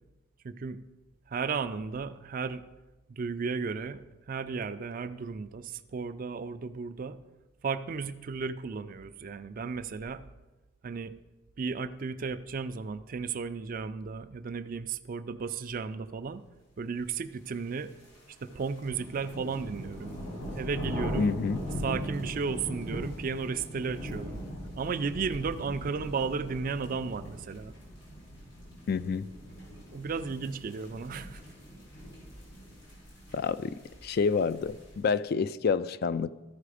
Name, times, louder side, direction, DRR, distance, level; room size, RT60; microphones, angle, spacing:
voice 1, 0.4-0.8 1.3-2.6 3.1-7.2 7.6-10.2 10.8-11.1 11.6-16.4 16.8-17.9 18.4-20.2 20.5-21.3 21.8-24.4 24.8-27.8 29.9-31.4, right 5 dB, 45° right, 12 dB, 0.4 m, -34 dB
sound 1, 17.5-35.1, equal, 80° left, 3.8 m, -40 dB
voice 2, 21.2-21.6 28.9-29.3 33.3-33.7 34.0-36.3, left 5 dB, 50° left, 15 dB, 0.3 m, -28 dB
14.0 x 4.9 x 4.9 m, 1.1 s
head